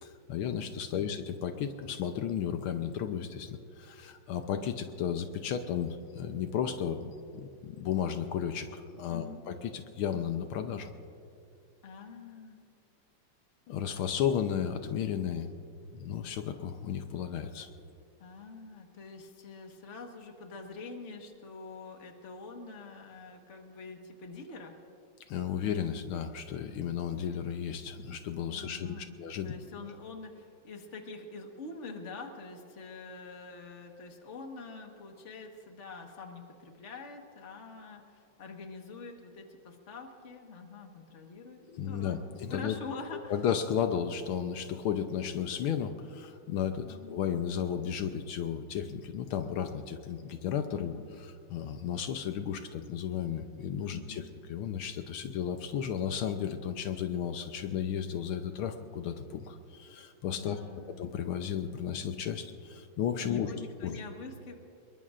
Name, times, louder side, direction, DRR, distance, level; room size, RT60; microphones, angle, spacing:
voice 1, 0.0-10.9 13.7-15.5 15.9-17.7 25.3-29.5 41.7-42.8 43.3-50.9 51.2-60.6 61.0-63.5 63.8-64.0, left 8 dB, 80° left, 7 dB, 1.6 m, -34 dB
voice 2, 9.1-9.4 11.8-12.6 18.2-24.8 28.5-43.4 46.8-47.2 50.7-51.1 53.8-54.3 60.4-61.0 63.2-64.6, left 3 dB, 35° left, 3 dB, 1.6 m, -45 dB
26.0 x 22.0 x 2.5 m, 2.5 s
omnidirectional pair, 2.4 m